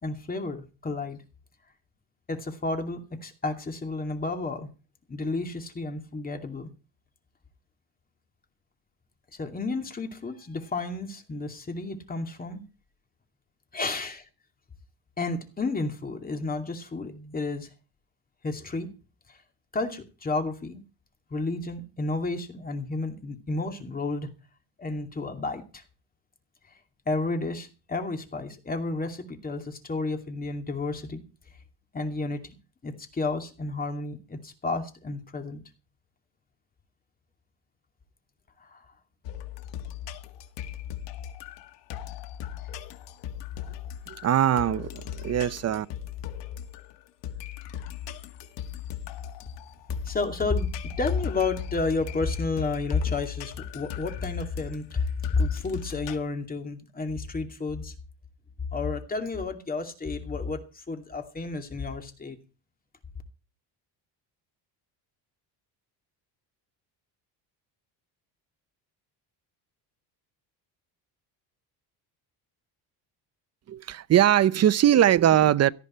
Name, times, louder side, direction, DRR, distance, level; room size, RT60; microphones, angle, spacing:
voice 1, 0.0-1.2 2.3-4.7 5.1-6.7 9.4-12.7 13.7-14.3 15.2-17.7 18.4-18.9 19.3-19.4 19.7-20.8 21.3-24.3 24.8-25.8 27.1-31.2 31.9-32.6 32.8-35.6 38.6-38.8 50.0-57.9 58.7-62.4, left 3 dB, 20° left, 2.6 m, -31 dB
sound 1, 39.2-56.2, left 10 dB, 85° left, 1.9 m, -39 dB
voice 2, 44.1-45.9 73.7-75.7, right 11 dB, 40° right, 0.7 m, -21 dB
18.0 x 13.0 x 4.4 m
cardioid pair, 150°, 41 cm